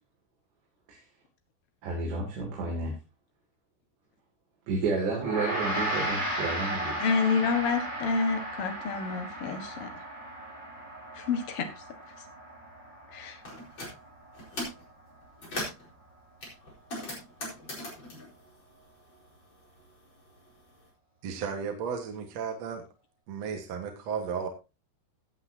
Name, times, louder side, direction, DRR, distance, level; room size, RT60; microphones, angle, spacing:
voice 1, 1.8-2.9 4.7-7.0, right 3 dB, 75° right, -2 dB, 4.9 m, -31 dB
Gong, 5.2-14.7, right 1 dB, 10° left, 4.8 m, -35 dB
voice 2, 7.0-9.9 11.1-11.7 13.1-13.4, left 5 dB, 60° left, 6 dB, 1.5 m, -28 dB
sound 1, 13.4-13.9 14.3-14.8 15.2-15.9 16.4-19.3 19.6-20.7, left 1 dB, 25° left, 4.9 m, -39 dB
voice 3, 21.2-22.8 23.3-24.5, right 6 dB, 55° right, 4 dB, 1.9 m, -34 dB
16.5 x 8.9 x 2.8 m, 0.28 s
omnidirectional pair, 5.1 m